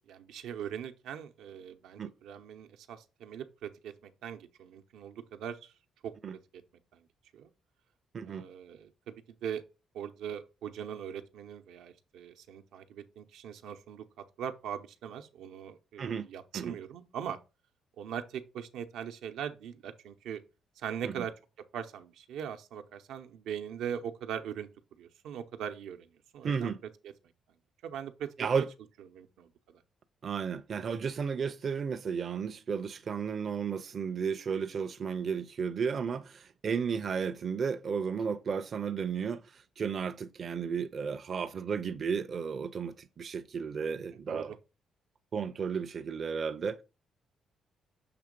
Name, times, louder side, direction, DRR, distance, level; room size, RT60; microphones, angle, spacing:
voice 1, 0.1-5.7 6.0-6.6 6.9-7.0 7.3-7.5 8.2-9.6 9.9-17.4 18.0-20.4 20.8-21.3 21.7-24.7 25.0-26.1 26.3-26.7 27.8-28.6 29.1-29.8 44.3-44.6, right 8 dB, 90° right, 0.7 m, -41 dB
voice 2, 26.4-26.8 28.4-28.7 30.2-44.5 45.3-46.8, right 6 dB, 40° right, 0.4 m, -33 dB
6.8 x 3.1 x 5.1 m
cardioid pair, 130°, 0 cm